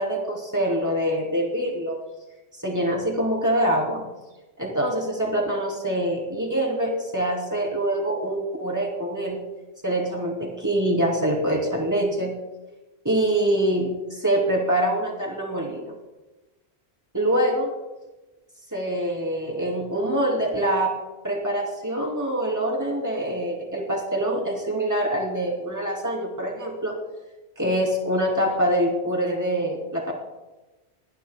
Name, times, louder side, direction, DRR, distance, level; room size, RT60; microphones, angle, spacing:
voice 1, 0.0-2.0 2.6-4.1 4.6-9.4 9.8-12.4 13.0-15.8 17.1-17.7 18.7-20.9 21.2-27.0 27.6-30.1, right 1 dB, 15° right, -2 dB, 3.3 m, -25 dB
27.5 x 19.5 x 2.3 m, 1.1 s
omnidirectional pair, 1.1 m